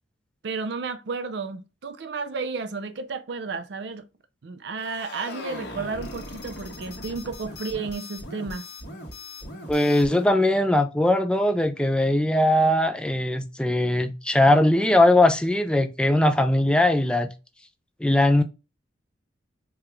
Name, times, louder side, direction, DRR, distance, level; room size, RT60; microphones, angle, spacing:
voice 1, 0.4-4.0 4.4-8.7, right 4 dB, 65° right, 0.4 m, -32 dB
sound 1, 4.8-10.3, left 1 dB, 60° left, 1.3 m, -39 dB
voice 2, 9.7-17.3 18.0-18.4, left 1 dB, 5° left, 0.3 m, -20 dB
4.7 x 2.3 x 3.0 m
head